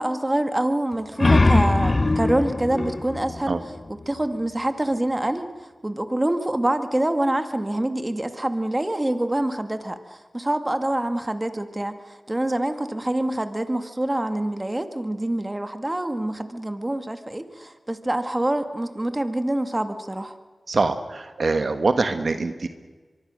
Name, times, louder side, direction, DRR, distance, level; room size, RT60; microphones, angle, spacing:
voice 1, 0.0-3.5 4.1-5.5 5.8-20.4, right 1 dB, 25° right, 8 dB, 2.1 m, -26 dB
sound 1, 0.9-4.4, left 2 dB, 40° left, 0.9 m, -22 dB
voice 2, 20.7-22.7, right 3 dB, 70° right, 8 dB, 1.3 m, -23 dB
24.5 x 23.5 x 6.5 m, 1.4 s
cardioid pair, 50°, 0 cm